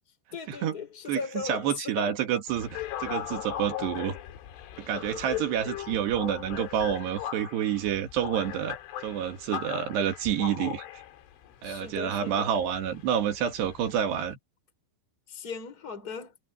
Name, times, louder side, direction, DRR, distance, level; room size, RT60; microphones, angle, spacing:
voice 1, 0.3-2.1 11.6-12.5 15.3-16.3, left 5 dB, 20° left, 4.9 m, -37 dB
voice 2, 1.1-4.2 4.8-8.8 9.0-10.8 11.6-14.4, right 9 dB, 65° right, 3.7 m, -28 dB
sound 1, 2.5-14.3, left 12 dB, 80° left, 4.7 m, -39 dB
omnidirectional pair, 5.6 m